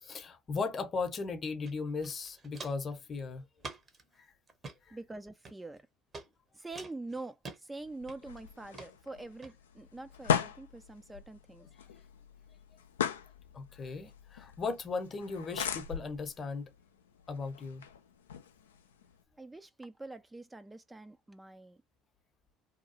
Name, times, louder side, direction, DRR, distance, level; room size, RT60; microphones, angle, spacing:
voice 1, 0.0-3.4 4.2-4.3 4.9-5.0 13.5-16.7 17.3-17.8, left 4 dB, 40° left, 0.8 m, -37 dB
Walk footsteps, 1.6-1.7 2.0-2.9 3.6-4.0 4.5-4.8 5.4-5.8 6.1-6.3 6.8-7.6 8.1-8.4 8.7-8.9 9.4-9.5, right 3 dB, 35° right, 0.8 m, -46 dB
voice 2, 4.9-5.8 6.5-11.7 19.4-21.8, right 2 dB, 15° right, 0.3 m, -45 dB
sound 1, 7.9-19.2, left 8 dB, 85° left, 0.3 m, -39 dB
2.8 x 2.2 x 2.7 m
hypercardioid pair, 65°, 0 cm